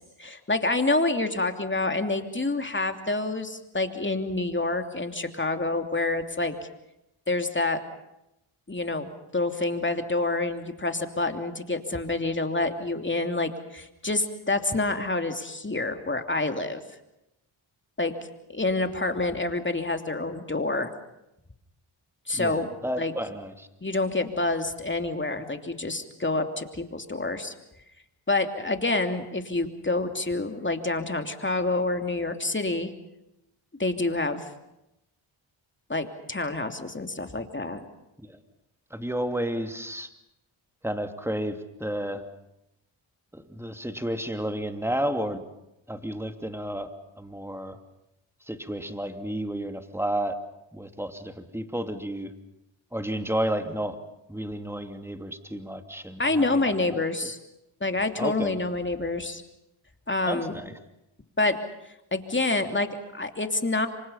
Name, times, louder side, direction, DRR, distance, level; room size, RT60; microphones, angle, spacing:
voice 1, 0.0-6.5 7.3-7.8 8.7-16.8 18.0-18.1 18.5-20.9 22.3-22.7 23.0-23.1 23.8-27.5 28.3-32.9 33.8-34.5 35.9-37.9 56.2-57.4 57.8-59.4 60.1-60.6 61.4-61.6 62.1-63.9, left 2 dB, 25° left, 6 dB, 2.9 m, -27 dB
voice 2, 22.3-23.7 38.2-38.4 38.9-40.1 40.8-42.2 43.3-45.4 45.9-46.9 47.2-47.8 48.5-50.4 50.7-52.3 52.9-54.0 54.3-57.0 58.2-58.6 60.3-60.7, right 1 dB, 5° right, 7 dB, 2.8 m, -31 dB
28.0 x 25.0 x 5.7 m, 0.86 s
cardioid pair, 50°, 49 cm